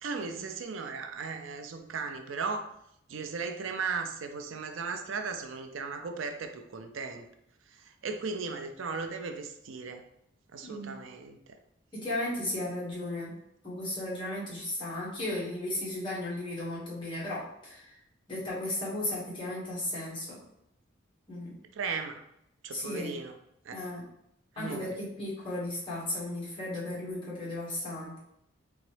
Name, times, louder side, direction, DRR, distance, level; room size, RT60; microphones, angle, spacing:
voice 1, 0.0-2.7 3.1-7.2 7.7-10.0 10.5-11.6 21.7-22.2 22.6-23.4 23.6-23.8 24.6-25.0, right 4 dB, 80° right, 6 dB, 0.5 m, -36 dB
voice 2, 10.6-10.9 11.9-13.3 13.6-17.9 18.3-20.4 21.3-21.6 22.7-23.1 23.7-24.0 24.6-24.9 25.2-28.2, left 1 dB, 25° left, -7 dB, 1.6 m, -35 dB
3.9 x 3.5 x 3.3 m, 0.77 s
head